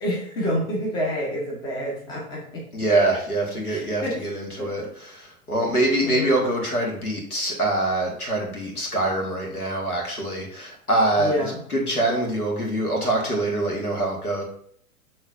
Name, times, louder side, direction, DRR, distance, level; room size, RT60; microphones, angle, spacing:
voice 1, 0.0-2.6 3.7-4.2 4.6-4.9 6.0-6.3 11.2-11.6, equal, 10° left, -3 dB, 0.7 m, -28 dB
voice 2, 2.7-14.4, right 2 dB, 85° left, -1 dB, 1.5 m, -24 dB
6.4 x 3.1 x 2.4 m, 0.62 s
figure-of-eight pair, 110°, 44 cm